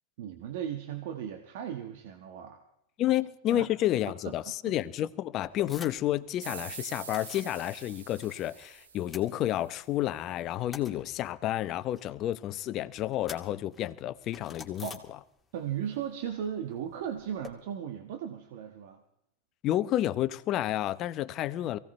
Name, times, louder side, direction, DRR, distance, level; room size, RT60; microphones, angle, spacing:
voice 1, 0.2-2.6 3.5-3.6 4.2-4.4 4.6-4.8 14.8-15.0 15.5-19.0, right 9 dB, 65° right, 1.4 m, -36 dB
voice 2, 3.0-14.9 19.6-21.8, left 13 dB, 45° left, 0.8 m, -30 dB
sound 1, 5.4-6.2 6.4-7.5 7.9-8.7 8.9-9.9 10.3-15.6 15.9-17.5, left 4 dB, 10° left, 2.4 m, -49 dB
sound 2, 6.4-9.7, right 6 dB, 85° right, 1.4 m, -45 dB
23.5 x 16.5 x 3.3 m
hypercardioid pair, 100°, 0 cm